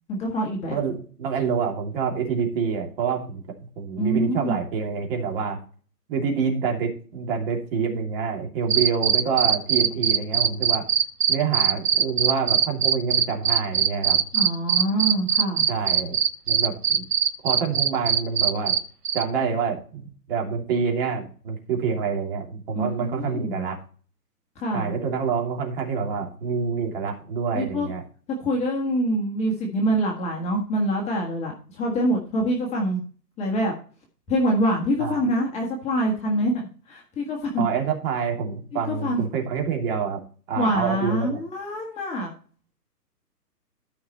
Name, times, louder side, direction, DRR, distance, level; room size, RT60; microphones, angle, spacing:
voice 1, 0.1-0.8 4.0-4.5 14.3-15.7 22.7-23.7 24.6-24.9 27.5-27.9 28.4-33.0 33.4-33.7 34.3-36.5 36.9-37.6 38.9-39.2 40.6-42.3, equal, 15° left, 0 dB, 1.6 m, -25 dB
voice 2, 0.7-3.4 3.8-5.6 6.1-10.8 11.3-14.2 15.7-16.2 16.5-17.0 17.4-18.7 19.1-23.8 24.7-28.0 35.0-35.2 37.6-40.2 40.5-41.4, right 6 dB, 35° right, 2 dB, 2.9 m, -27 dB
sound 1, 8.7-18.8 19.1-19.2, right 8 dB, 65° right, 1.2 m, -20 dB
13.0 x 5.8 x 4.2 m, 0.40 s
figure-of-eight pair, 135°, 49 cm